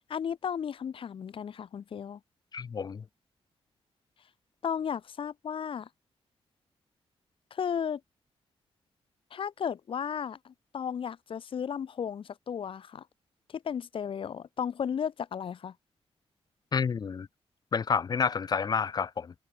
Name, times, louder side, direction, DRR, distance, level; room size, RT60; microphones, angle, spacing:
voice 1, 0.1-2.2 4.6-5.9 7.5-8.0 9.3-13.0 13.5-15.7, left 7 dB, 55° left, 1.2 m, -34 dB
voice 2, 2.5-3.0 16.7-17.3 17.7-19.3, left 6 dB, 40° left, 0.7 m, -29 dB
wide cardioid pair, 140°, 11 cm